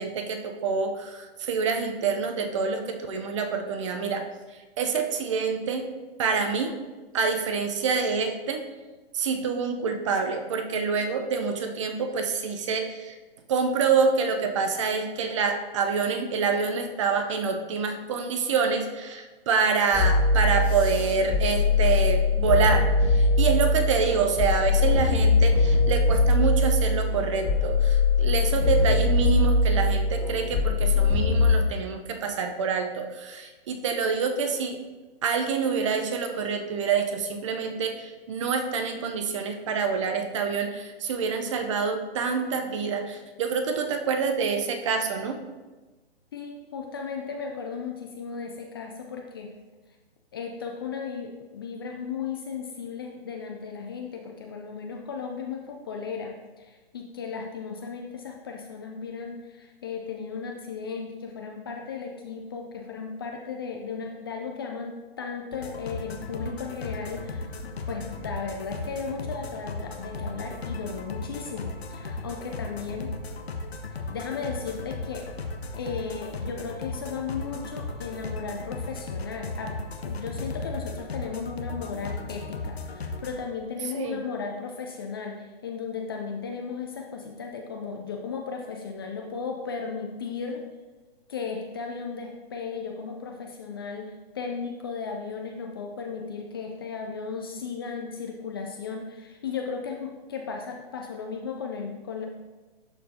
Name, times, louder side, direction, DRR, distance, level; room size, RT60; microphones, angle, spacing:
voice 1, 0.0-4.2 4.8-5.8 6.2-6.7 7.1-8.6 9.1-13.1 13.5-34.8 35.2-45.4 83.9-84.2, right 5 dB, 30° right, 6 dB, 0.6 m, -27 dB
sound 1, 19.9-31.5, left 3 dB, 5° right, 2.2 m, -22 dB
voice 2, 46.3-49.5 50.3-73.1 74.1-75.3 75.8-79.7 80.0-90.6 91.3-102.3, left 5 dB, 25° left, 2 dB, 0.4 m, -35 dB
sound 2, 65.5-83.4, left 3 dB, 80° left, 0.9 m, -36 dB
11.5 x 4.4 x 2.7 m, 1.2 s
hypercardioid pair, 135°, 31 cm